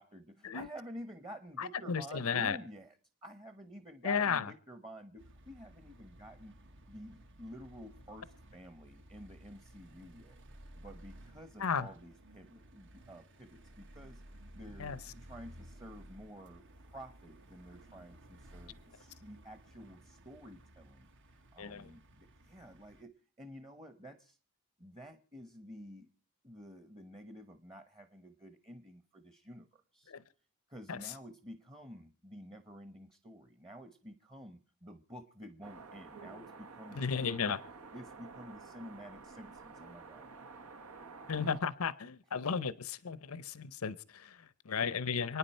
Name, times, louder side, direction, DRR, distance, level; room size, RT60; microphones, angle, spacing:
voice 1, 0.0-3.0 3.2-6.6 6.9-10.4 10.8-14.2 14.5-24.4 24.8-26.1 26.4-30.1 30.7-37.6 37.9-40.3, equal, 20° right, 9 dB, 1.1 m, -51 dB
voice 2, 1.6-2.6 4.0-4.5 11.6-11.9 14.8-15.0 21.6-21.9 30.1-30.2 30.9-31.0 36.9-37.6 41.3-45.4, left 6 dB, 75° left, 17 dB, 0.7 m, -34 dB
sound 1, 5.2-23.0, right 1 dB, 60° right, 1.3 m, -56 dB
sound 2, 35.6-41.6, right 4 dB, 80° right, 1.4 m, -51 dB
29.0 x 9.8 x 4.4 m, 0.39 s
head